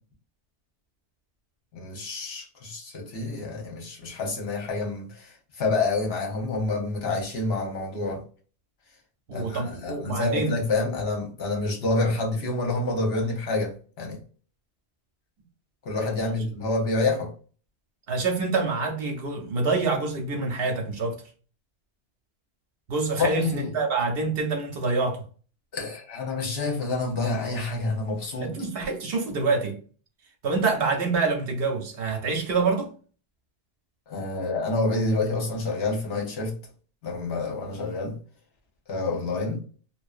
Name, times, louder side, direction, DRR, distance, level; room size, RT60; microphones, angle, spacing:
voice 1, 1.7-8.2 9.3-14.2 15.8-17.3 23.2-23.7 25.7-28.5 34.1-36.5 37.0-38.2 38.9-39.6, left 3 dB, 65° left, 1.0 m, -28 dB
voice 2, 9.3-10.6 16.2-16.4 18.1-21.2 22.9-25.2 28.4-29.8 30.4-32.9, right 4 dB, 65° right, 0.8 m, -26 dB
2.6 x 2.1 x 2.3 m
omnidirectional pair, 1.1 m